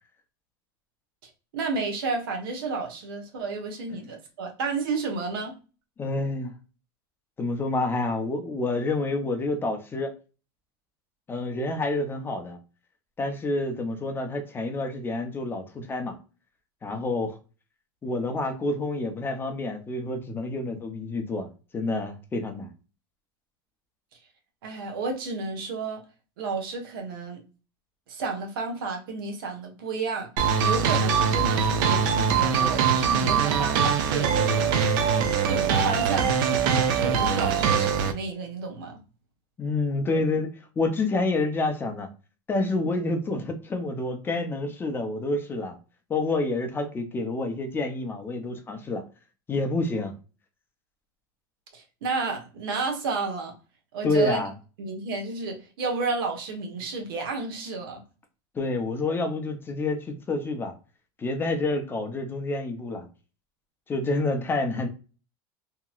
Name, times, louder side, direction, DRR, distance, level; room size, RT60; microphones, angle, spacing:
voice 1, 1.5-5.5 24.6-26.0 26.4-27.4 28.1-30.3 30.6-34.7 35.5-36.4 36.9-39.0 51.7-53.5 53.9-54.4 54.8-58.0, right 4 dB, 80° right, 4 dB, 1.0 m, -31 dB
voice 2, 6.0-6.5 7.4-10.1 11.3-12.6 13.2-16.2 16.8-17.4 18.0-21.5 21.7-22.7 39.6-40.5 40.8-42.1 42.5-45.8 46.1-49.0 49.5-50.1 54.0-54.5 58.5-60.7 61.2-63.1 63.9-64.9, left 2 dB, 20° left, 6 dB, 0.5 m, -28 dB
sound 1, 30.4-38.1, right 6 dB, 65° right, 0.5 m, -23 dB
2.9 x 2.8 x 2.3 m, 0.34 s
supercardioid pair, 130°, 12 cm